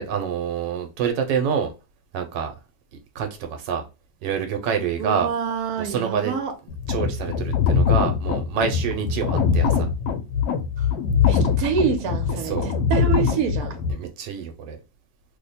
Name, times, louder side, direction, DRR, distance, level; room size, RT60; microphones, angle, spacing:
voice 1, 0.0-1.7 2.1-2.5 3.1-3.8 4.2-5.3 5.8-6.3 6.9-9.9 12.4-12.7 13.9-14.8, right 7 dB, 85° right, 1.3 m, -27 dB
voice 2, 5.0-6.5 10.8-10.9 11.3-13.8, right 7 dB, 65° right, 1.1 m, -27 dB
sound 1, 6.7-13.9, left 6 dB, 90° left, 1.3 m, -22 dB
3.0 x 2.1 x 4.0 m
omnidirectional pair, 1.9 m